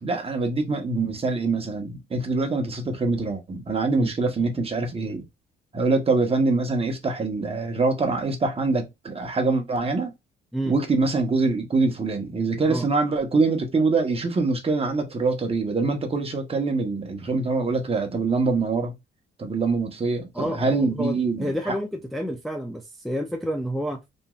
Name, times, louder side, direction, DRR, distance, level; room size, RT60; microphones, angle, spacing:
voice 1, 0.0-5.2 5.7-10.1 10.7-18.9 19.4-21.7, right 3 dB, 30° right, 0.9 m, -24 dB
voice 2, 20.3-24.0, equal, ahead, 0.4 m, -29 dB
2.9 x 2.6 x 2.3 m
cardioid pair, 90°, 20 cm